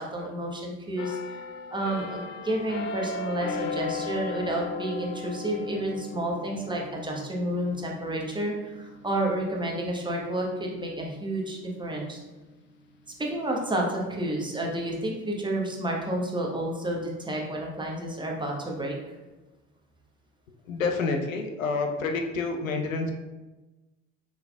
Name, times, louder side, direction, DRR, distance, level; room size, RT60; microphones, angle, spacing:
voice 1, 0.0-1.4 1.7-12.2 13.2-19.0, right 1 dB, 10° right, -1 dB, 0.9 m, -30 dB
sound 1, 1.0-12.5 12.9-13.2, left 4 dB, 30° left, 0.3 m, -38 dB
voice 2, 20.7-23.1, left 4 dB, 80° left, 4 dB, 0.6 m, -28 dB
5.7 x 3.6 x 2.2 m, 1.1 s
figure-of-eight pair, 55°, 40 cm